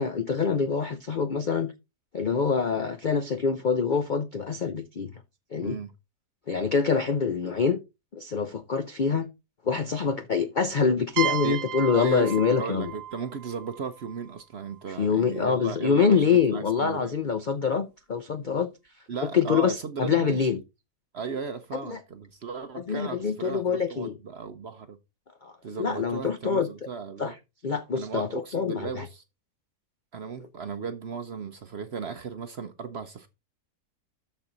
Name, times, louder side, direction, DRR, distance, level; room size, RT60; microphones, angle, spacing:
voice 1, 0.0-1.7 2.1-5.1 5.5-5.8 6.5-7.8 8.1-9.3 9.7-12.9 15.0-18.7 19.3-20.6 21.9-22.0 22.7-24.1 25.4-25.5 25.8-26.7 27.2-27.3 27.6-29.1, left 6 dB, 55° left, 0.5 m, -25 dB
voice 2, 5.6-5.9 11.4-11.6 11.9-17.1 19.1-20.5 21.1-25.0 25.6-27.3 27.9-29.2 30.1-33.3, right 6 dB, 55° right, 0.8 m, -36 dB
sound 1, 11.2-14.8, right 11 dB, 75° right, 1.2 m, -34 dB
13.0 x 4.4 x 3.9 m
omnidirectional pair, 1.7 m